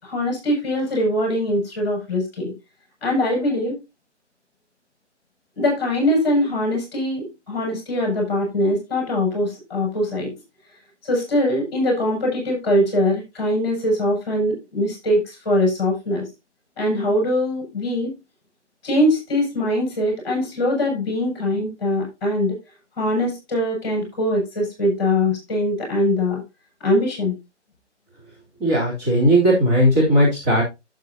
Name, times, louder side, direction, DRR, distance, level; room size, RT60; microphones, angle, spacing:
voice 1, 0.0-2.5 3.0-3.8 5.5-10.3 11.0-16.3 16.8-18.1 18.8-22.5 23.0-26.4 26.8-27.4, left 1 dB, 20° left, -1 dB, 6.3 m, -22 dB
voice 2, 28.6-30.6, equal, 15° right, -7 dB, 3.6 m, -17 dB
11.5 x 7.8 x 2.8 m, 0.23 s
figure-of-eight pair, 150°, 36 cm